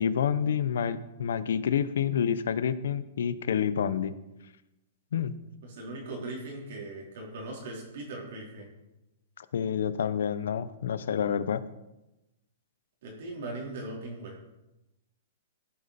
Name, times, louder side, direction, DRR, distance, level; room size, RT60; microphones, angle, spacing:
voice 1, 0.0-4.1 5.1-5.3 9.4-11.6, left 8 dB, 75° left, 14 dB, 0.7 m, -28 dB
voice 2, 5.6-8.7 13.0-14.3, right 2 dB, 55° right, -2 dB, 3.9 m, -39 dB
15.0 x 8.6 x 4.2 m, 0.97 s
hypercardioid pair, 165°, 0 cm